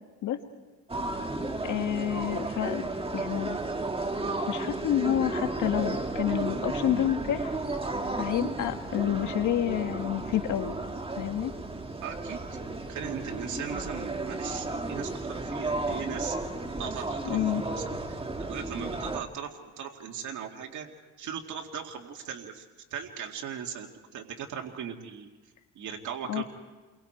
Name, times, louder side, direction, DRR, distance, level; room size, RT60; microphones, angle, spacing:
sound 1, 0.9-19.2, right 2 dB, 20° right, 1.8 m, -33 dB
voice 1, 1.6-2.8 3.1-3.6 4.5-7.5 8.1-10.8 11.2-11.5 17.2-17.6 26.3-26.4, left 11 dB, 80° left, 6 dB, 1.7 m, -29 dB
voice 2, 12.0-12.4 12.9-16.5 16.8-20.9 21.2-22.6 22.9-25.3 25.8-26.4, right 8 dB, 75° right, 2 dB, 2.2 m, -38 dB
29.5 x 23.0 x 4.5 m, 1.3 s
cardioid pair, 90°, 30 cm